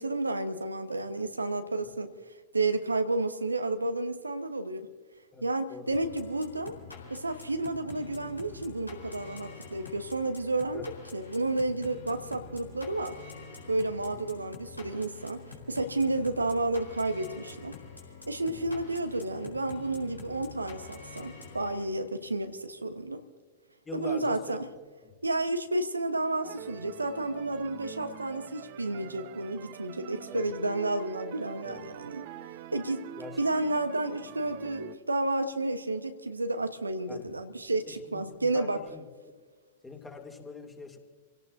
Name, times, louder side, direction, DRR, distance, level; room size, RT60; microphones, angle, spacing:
voice 1, 0.0-2.1 2.5-4.9 5.4-6.8 7.1-10.8 11.1-13.2 13.7-17.8 18.3-23.2 23.9-24.6 25.2-32.3 32.7-33.0 33.4-38.8, right 2 dB, 80° right, 8 dB, 1.1 m, -31 dB
sound 1, 5.9-22.2, left 4 dB, 90° left, 4.3 m, -46 dB
voice 2, 23.9-24.6 25.0-25.1 30.3-30.5 31.6-31.8 33.2-33.4 37.1-37.3 37.9-39.0 39.8-41.0, left 4 dB, 10° left, 2 dB, 2.7 m, -43 dB
sound 2, 26.4-35.0, right 12 dB, 45° right, 0.9 m, -45 dB
29.0 x 17.5 x 2.7 m, 1.5 s
figure-of-eight pair, 100°, 0 cm